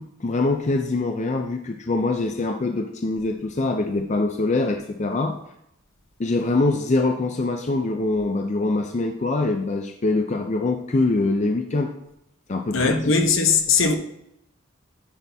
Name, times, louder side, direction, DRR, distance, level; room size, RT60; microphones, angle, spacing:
voice 1, 0.0-5.4 6.2-11.9 12.5-13.1, left 2 dB, 35° left, 0.5 m, -24 dB
voice 2, 12.7-13.9, left 4 dB, 70° left, 1.0 m, -19 dB
10.0 x 4.2 x 3.5 m
head